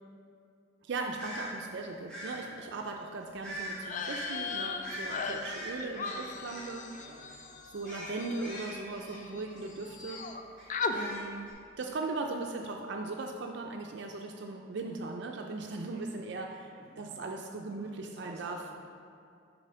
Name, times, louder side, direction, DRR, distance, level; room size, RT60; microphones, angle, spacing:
voice 1, 0.8-6.9 7.6-10.3 10.9-16.7 17.0-18.6, right 3 dB, 65° right, 2 dB, 0.4 m, -38 dB
sound 1, 1.2-1.5 2.1-2.4 3.4-3.8 4.0-4.3 4.8-7.0 7.3-7.5 7.8-9.7 10.1-10.2 10.6-11.5, right 1 dB, 5° left, 1.9 m, -42 dB
sound 2, 3.8-9.4 9.7-10.4 10.7-11.0, left 5 dB, 40° left, 0.4 m, -38 dB
voice 2, 4.8-5.2 5.7-6.5 7.0-7.2 8.9-9.8 15.9-16.3 16.7-17.0 17.8-18.7, right 1 dB, 20° right, -5 dB, 1.7 m, -57 dB
7.4 x 4.4 x 5.5 m, 2.5 s
head